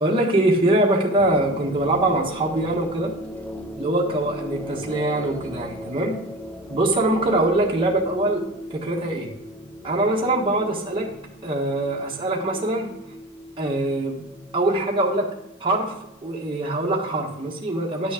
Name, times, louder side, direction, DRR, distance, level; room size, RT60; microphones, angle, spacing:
voice 1, 0.0-3.1 3.8-6.2 6.7-8.4 8.7-9.3 9.8-11.1 11.4-12.9 13.6-14.2 14.5-15.3 15.6-15.9 16.2-18.1, right 1 dB, 25° right, -2 dB, 1.4 m, -23 dB
sound 1, 1.2-17.6, equal, 5° left, 0.6 m, -39 dB
10.5 x 6.3 x 4.9 m, 0.79 s
head